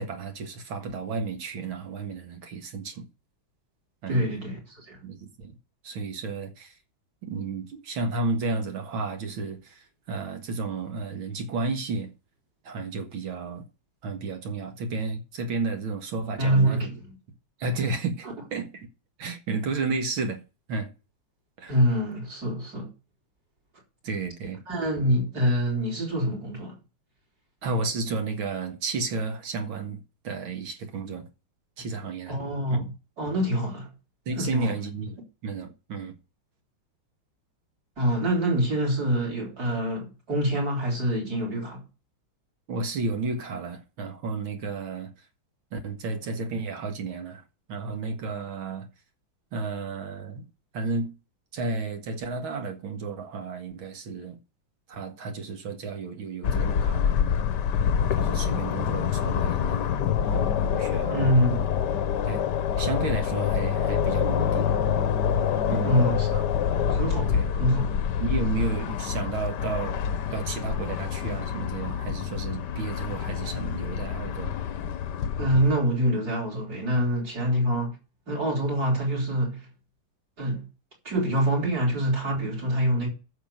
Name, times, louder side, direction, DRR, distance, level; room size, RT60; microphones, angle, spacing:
voice 1, 0.0-3.1 4.0-4.3 5.0-5.5 5.8-6.7 7.2-12.1 12.7-13.6 14.0-16.9 17.6-18.9 19.2-20.4 20.7-20.9 21.6-21.7 24.0-24.6 27.6-31.3 31.8-32.4 32.7-32.9 34.3-36.1 42.7-45.1 45.7-47.4 47.7-48.9 49.5-50.5 50.7-51.1 51.5-54.4 54.9-57.3 58.2-59.9 60.3-61.3 62.3-62.4 62.8-64.7 65.7-66.0 67.3-67.5 68.2-70.0 70.3-74.6, right 3 dB, 75° right, 2.5 m, -32 dB
voice 2, 4.1-5.0 16.4-17.2 21.7-22.9 24.7-26.8 32.3-32.9 33.2-33.9 34.3-34.7 38.0-41.8 61.1-61.7 65.8-66.4 66.9-67.9 75.4-77.9 78.3-79.7 80.4-80.7 81.0-83.1, equal, 45° right, 4.7 m, -25 dB
sound 1, 56.4-75.7, left 8 dB, 60° left, 1.3 m, -26 dB
9.2 x 6.7 x 7.7 m
omnidirectional pair, 2.3 m